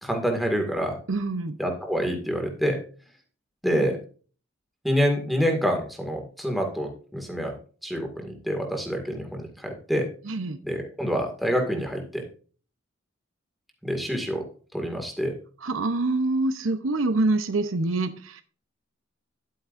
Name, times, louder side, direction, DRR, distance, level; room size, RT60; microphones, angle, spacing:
voice 1, 0.0-1.0 1.6-2.8 3.6-4.0 4.8-7.5 7.8-10.1 10.6-12.2 13.8-14.4 14.7-15.3, equal, ahead, 3 dB, 2.0 m, -27 dB
voice 2, 1.1-1.6 10.2-10.6 15.6-18.4, right 2 dB, 80° right, 9 dB, 0.8 m, -25 dB
10.0 x 9.1 x 2.6 m, 0.38 s
head